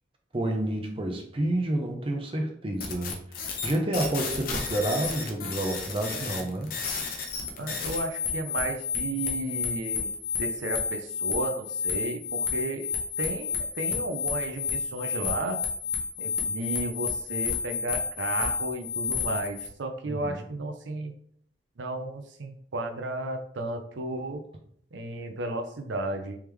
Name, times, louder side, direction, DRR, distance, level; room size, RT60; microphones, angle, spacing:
voice 1, 0.3-3.2 3.6-6.7 20.1-20.5, right 1 dB, 30° right, 3 dB, 0.6 m, -29 dB
sound 1, 2.8-19.7, left 5 dB, 50° left, 0.7 m, -31 dB
voice 2, 7.6-10.1 10.4-15.6 16.2-21.1 21.8-24.4 24.9-26.4, right 2 dB, 85° right, 6 dB, 0.5 m, -33 dB
3.5 x 3.1 x 3.3 m, 0.64 s
head